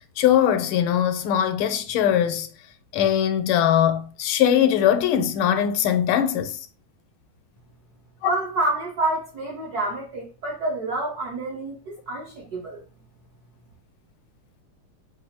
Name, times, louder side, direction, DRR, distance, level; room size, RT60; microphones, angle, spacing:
voice 1, 0.2-2.5 2.9-6.6 8.2-8.3, left 10 dB, 85° left, 1.4 m, -21 dB
voice 2, 8.2-12.8, right 2 dB, 60° right, 1.0 m, -28 dB
4.8 x 2.5 x 2.7 m
omnidirectional pair, 2.3 m